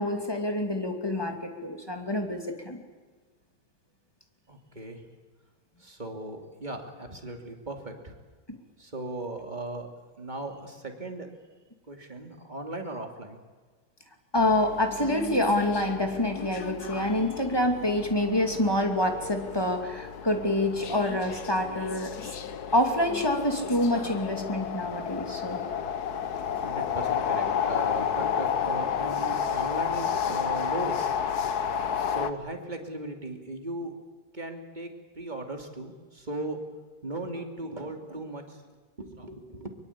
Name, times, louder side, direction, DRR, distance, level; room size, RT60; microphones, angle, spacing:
voice 1, 0.0-2.8 14.3-22.3 22.7-25.6, left 1 dB, 15° left, 4 dB, 2.7 m, -27 dB
voice 2, 4.5-5.0 5.8-8.1 8.8-9.9 10.2-11.3 11.9-13.4 26.6-31.1 32.0-33.9 34.3-34.9 35.2-36.6 37.0-38.6 39.0-39.7, right 2 dB, 25° right, 4 dB, 2.9 m, -37 dB
sound 1, 14.4-32.3, left 7 dB, 65° left, 1.6 m, -31 dB
23.5 x 23.0 x 8.6 m, 1.4 s
omnidirectional pair, 1.8 m